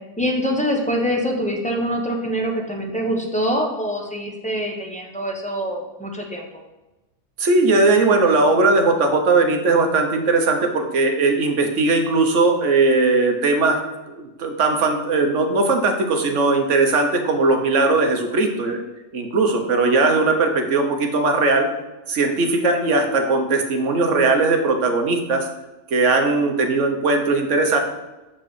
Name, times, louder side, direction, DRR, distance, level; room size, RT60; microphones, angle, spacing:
voice 1, 0.2-6.4, equal, 5° left, 0 dB, 0.8 m, -24 dB
voice 2, 7.4-13.8 14.1-18.8 19.1-21.7 22.1-25.5 25.9-27.8, right 3 dB, 55° right, 3 dB, 1.2 m, -19 dB
7.3 x 4.4 x 4.9 m, 1.0 s
omnidirectional pair, 1.6 m